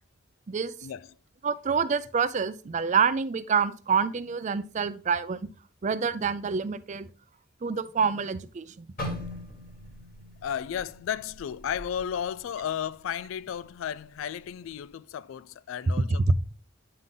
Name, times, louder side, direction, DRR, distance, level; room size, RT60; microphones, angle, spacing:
voice 1, 1.4-5.5 5.8-7.1 7.6-8.8 16.3-16.4, right 6 dB, 35° right, 0.4 m, -27 dB
sound 1, 9.0-13.0 13.4-13.6 14.3-14.6, left 1 dB, 45° left, 2.0 m, -41 dB
voice 2, 10.4-16.3, left 9 dB, 80° left, 0.3 m, -34 dB
9.3 x 3.8 x 3.7 m
head